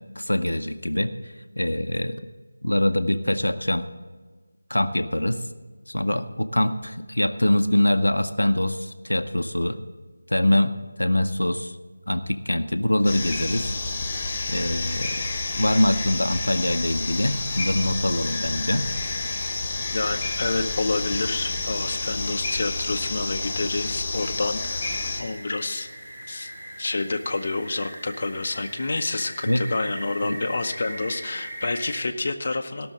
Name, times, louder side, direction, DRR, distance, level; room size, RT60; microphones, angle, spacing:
voice 1, 0.2-2.2 2.6-3.9 4.7-5.4 5.9-9.8 10.3-10.7 11.0-11.8 12.1-13.7 14.5-15.2 15.5-18.9 29.5-29.6 30.2-30.4, left 1 dB, 80° left, 8 dB, 0.7 m, -24 dB
sound 1, 13.0-25.2, left 3 dB, 20° left, 1.6 m, -29 dB
voice 2, 19.9-24.9 25.2-25.9 26.3-26.5 26.8-32.9, left 3 dB, 45° left, 5 dB, 0.8 m, -28 dB
sound 2, 25.2-32.0, equal, 35° right, 2.4 m, -39 dB
17.0 x 6.2 x 6.2 m, 1.4 s
figure-of-eight pair, 165°, 0 cm